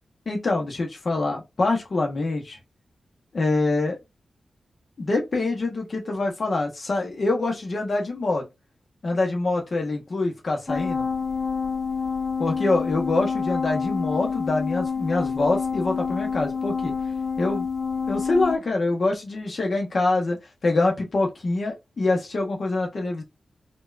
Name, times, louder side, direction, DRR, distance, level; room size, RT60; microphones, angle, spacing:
voice 1, 0.3-2.6 3.3-4.0 5.0-8.4 9.0-11.1 12.4-16.9 17.4-17.7 18.1-20.4 20.6-23.2, left 2 dB, 50° left, 0.9 m, -25 dB
sound 1, 10.7-18.6, left 5 dB, 30° left, 0.6 m, -27 dB
4.2 x 2.2 x 2.4 m
wide cardioid pair, 105°, 0 cm